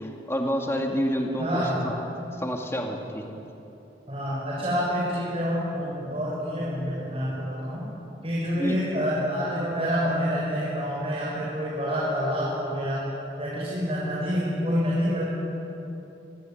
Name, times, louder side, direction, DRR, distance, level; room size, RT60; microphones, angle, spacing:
voice 1, 0.0-1.9 2.4-3.4 8.5-8.8, equal, 15° left, 1 dB, 2.4 m, -29 dB
voice 2, 1.4-1.8 4.1-7.8 8.2-13.0 13.4-15.2, equal, 30° right, -6 dB, 6.4 m, -27 dB
26.0 x 22.5 x 9.4 m, 3.0 s
head